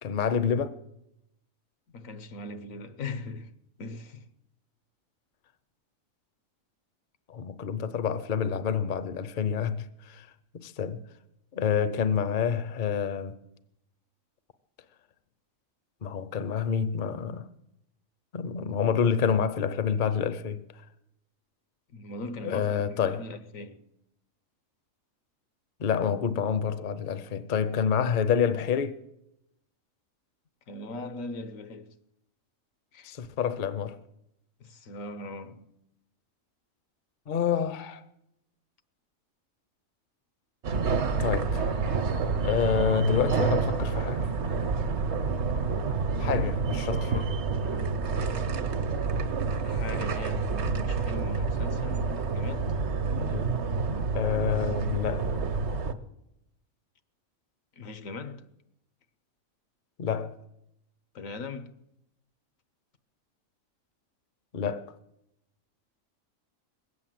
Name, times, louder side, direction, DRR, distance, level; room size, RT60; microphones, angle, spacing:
voice 1, 0.0-0.8 7.3-10.3 10.5-11.0 11.5-13.4 16.0-17.5 18.3-20.6 22.4-23.2 25.8-29.0 33.0-34.0 37.3-38.0 41.2-41.7 42.4-44.3 46.2-47.3 53.2-53.6 54.1-55.4 60.0-60.4 64.5-64.9, left 7 dB, 45° left, 0.8 m, -28 dB
voice 2, 1.9-3.5 3.8-4.3 21.9-23.8 30.7-32.0 32.9-33.1 34.6-35.7 49.6-52.7 57.8-58.5 61.1-61.7, left 2 dB, 80° left, 1.4 m, -40 dB
sound 1, 40.6-55.9, right 4 dB, 60° right, 1.2 m, -28 dB
21.0 x 8.6 x 7.6 m
omnidirectional pair, 1.4 m